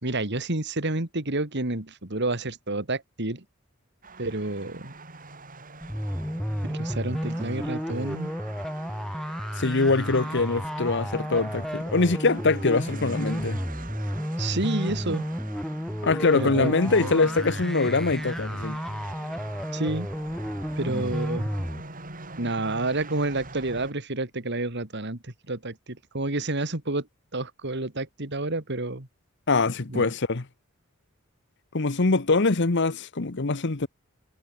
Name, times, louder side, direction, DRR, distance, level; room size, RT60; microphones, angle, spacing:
voice 1, 0.0-3.4 4.2-4.9 6.7-8.3 14.4-15.3 16.3-17.1 17.6-17.7 19.7-20.1 20.8-21.5 22.4-27.1 27.3-29.1 29.9-30.1, right 2 dB, 60° right, 2.9 m, -29 dB
sound 1, 4.0-23.9, right 3 dB, 40° right, 7.0 m, -44 dB
sound 2, 5.8-21.8, equal, ahead, 4.9 m, -32 dB
voice 2, 9.6-13.6 16.0-18.8 29.5-30.4 31.7-33.9, left 3 dB, 60° left, 1.1 m, -23 dB
head